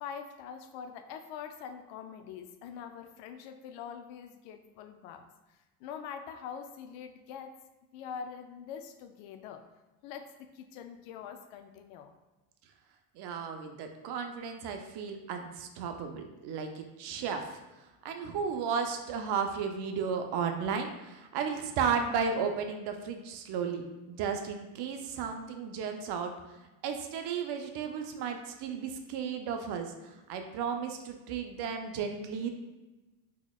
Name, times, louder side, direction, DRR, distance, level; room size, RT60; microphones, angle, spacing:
voice 1, 0.0-5.3 5.8-7.6 7.9-9.6 10.0-12.1, left 7 dB, 70° left, 7 dB, 0.5 m, -44 dB
voice 2, 13.2-17.6 18.0-23.8 24.1-26.3 26.8-32.5, right 6 dB, 55° right, 5 dB, 0.6 m, -34 dB
3.9 x 3.0 x 2.3 m, 1.1 s
supercardioid pair, 90°, 48 cm